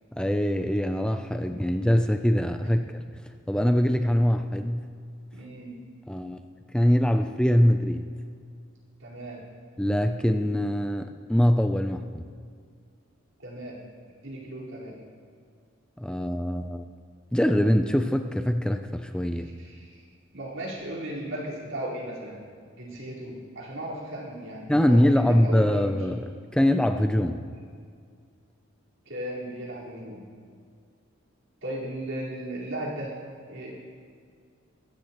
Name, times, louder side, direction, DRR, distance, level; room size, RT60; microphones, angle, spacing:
voice 1, 0.1-3.0 3.5-4.9 6.1-6.4 6.7-8.1 9.8-12.2 16.0-16.8 17.3-19.5 24.7-27.4, equal, 5° left, 6 dB, 0.4 m, -23 dB
voice 2, 5.3-5.8 9.0-9.4 13.4-13.8 14.2-15.0 19.6-20.0 20.3-22.4 22.8-26.0 29.1-30.3 31.6-33.1 33.5-33.7, right 1 dB, 75° right, -6 dB, 4.5 m, -36 dB
22.5 x 15.5 x 3.1 m, 2.2 s
head